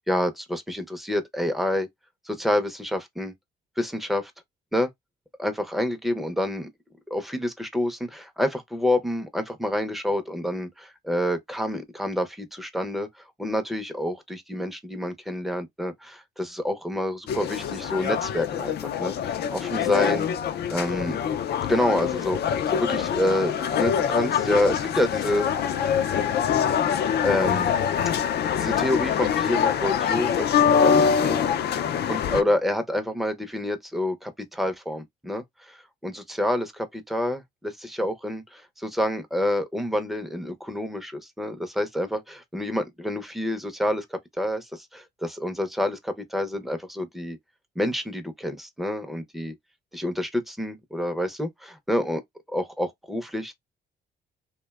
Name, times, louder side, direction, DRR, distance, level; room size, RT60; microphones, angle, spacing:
voice 1, 0.1-1.9 2.3-3.3 3.8-4.3 4.7-4.9 5.4-6.7 7.1-13.1 13.4-20.3 20.7-21.2 21.7-25.5 27.2-27.7 28.6-31.4 32.1-47.4 47.8-49.5 49.9-52.2 52.5-53.5, left 1 dB, ahead, 0.6 m, -28 dB
sound 1, 17.3-32.4, left 8 dB, 55° left, 0.4 m, -24 dB
2.5 x 2.2 x 2.2 m
cardioid pair, 90°, 20 cm